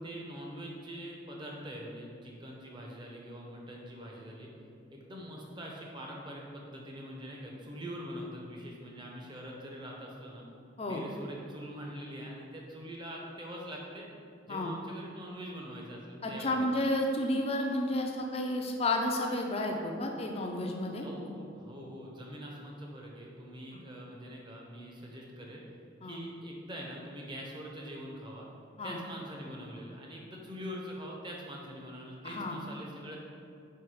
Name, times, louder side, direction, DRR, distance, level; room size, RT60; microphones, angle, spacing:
voice 1, 0.0-4.5 4.9-10.4 10.9-14.1 14.5-16.6 21.0-25.6 26.0-28.5 28.8-33.2, equal, 20° right, -2 dB, 0.7 m, -44 dB
voice 2, 16.2-21.1 26.0-26.2 28.8-29.0 32.2-32.6, left 1 dB, 30° left, 1 dB, 0.5 m, -31 dB
4.5 x 4.4 x 4.8 m, 2.5 s
head